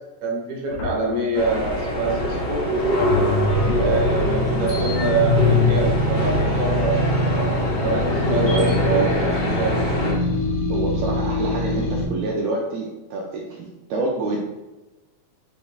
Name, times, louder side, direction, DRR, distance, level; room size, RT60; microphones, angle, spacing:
voice 1, 0.2-2.6 3.7-9.8, right 3 dB, 65° right, -4 dB, 0.9 m, -25 dB
sound 1, 0.7-2.6 3.0-8.8, left 6 dB, 85° left, 3.3 m, -27 dB
sound 2, 1.3-10.1, equal, 35° left, 1.3 m, -24 dB
sound 3, 3.5-12.0, left 1 dB, 65° left, 2.2 m, -24 dB
voice 2, 3.8-4.1 8.9-9.2 10.7-14.4, right 2 dB, 80° right, -2 dB, 1.6 m, -27 dB
6.9 x 3.1 x 2.3 m, 1.1 s
omnidirectional pair, 3.6 m